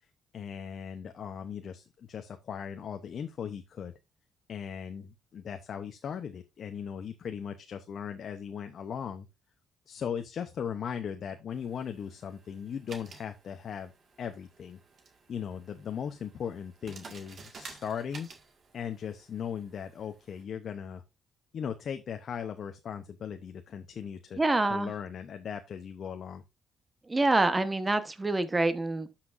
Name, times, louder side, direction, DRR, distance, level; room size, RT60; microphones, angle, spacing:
voice 1, 0.3-3.9 4.5-9.3 9.9-13.9 14.2-14.8 15.3-18.3 18.7-21.0 21.5-24.4 24.7-26.4, left 7 dB, 55° left, 0.7 m, -38 dB
sound 1, 11.5-20.4, right 4 dB, 50° right, 1.9 m, -53 dB
voice 2, 24.4-24.9 27.1-29.2, right 2 dB, 20° right, 1.1 m, -26 dB
12.0 x 5.8 x 2.6 m
cardioid pair, 100°, 0 cm